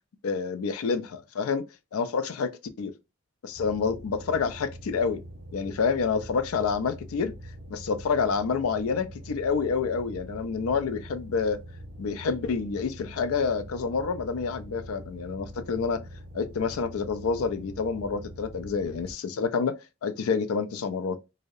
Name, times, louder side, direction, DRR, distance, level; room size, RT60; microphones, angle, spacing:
voice 1, 0.2-2.5 2.8-2.9 3.4-5.2 5.5-7.3 7.7-11.6 12.0-16.0 16.3-21.2, left 5 dB, 80° left, 0.4 m, -28 dB
sound 1, 3.5-19.1, equal, 55° right, 0.6 m, -44 dB
2.6 x 2.0 x 2.3 m
head